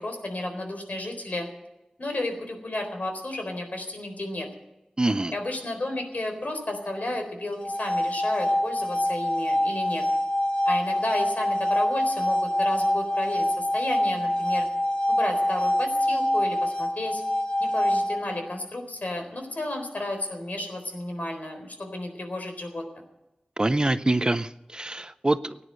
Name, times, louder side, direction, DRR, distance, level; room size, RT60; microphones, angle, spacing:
voice 1, 0.0-1.5 2.0-4.5 5.3-10.0 10.7-14.7 15.1-17.2 17.6-22.8, left 1 dB, 70° left, 4 dB, 4.1 m, -32 dB
voice 2, 5.0-5.3 23.6-25.6, right 2 dB, 30° right, 13 dB, 0.6 m, -25 dB
sound 1, 7.5-18.5, left 1 dB, 30° left, 2.1 m, -25 dB
17.0 x 9.9 x 7.6 m, 0.95 s
wide cardioid pair, 65°, 3 cm